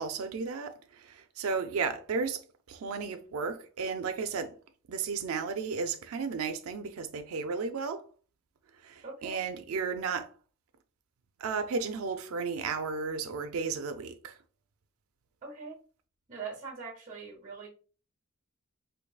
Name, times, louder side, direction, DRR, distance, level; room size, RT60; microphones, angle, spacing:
voice 1, 0.0-2.4 2.7-4.5 4.9-8.0 8.8-10.3 11.4-14.4, right 5 dB, 85° right, 0.4 m, -34 dB
voice 2, 9.0-9.4 15.4-15.8 16.3-17.7, right 5 dB, 35° right, 0.8 m, -42 dB
4.6 x 2.6 x 2.3 m
head